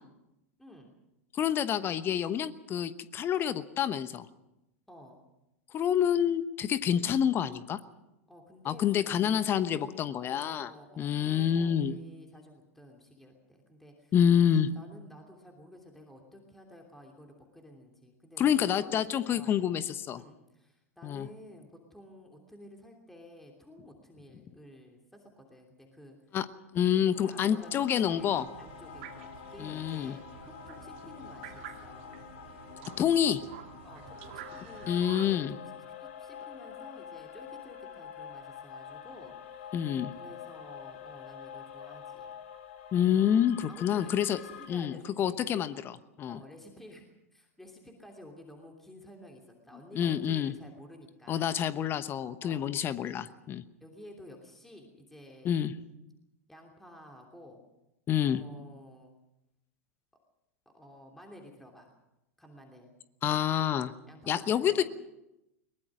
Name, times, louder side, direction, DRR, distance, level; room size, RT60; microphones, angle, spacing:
voice 1, 0.6-0.9 4.9-5.2 7.0-7.1 8.3-14.1 14.4-19.7 20.2-26.2 27.2-32.3 33.8-35.2 35.5-35.7 36.0-39.7 40.1-42.3 43.7-45.4 46.2-47.0 47.3-51.7 52.4-52.8 53.8-55.5 56.5-57.6 58.2-59.1 60.7-61.9 62.4-62.9 64.1-64.8, equal, 5° left, 1 dB, 3.0 m, -52 dB
voice 2, 1.4-4.3 5.7-7.8 8.6-10.7 11.0-12.0 14.1-14.7 18.4-20.2 21.0-21.3 26.3-26.5 26.7-28.5 29.6-30.2 33.0-33.4 34.9-35.5 39.7-40.1 42.9-44.4 44.7-46.4 49.9-50.5 51.3-53.6 55.4-55.7 58.1-58.4 63.2-63.9 64.3-64.8, left 9 dB, 30° left, 14 dB, 1.1 m, -28 dB
sound 1, 27.1-44.7, left 8 dB, 55° left, 2.3 m, -47 dB
sound 2, 28.0-35.4, right 11 dB, 55° right, 1.9 m, -49 dB
22.0 x 20.0 x 6.3 m, 0.92 s
figure-of-eight pair, 90°, 8 cm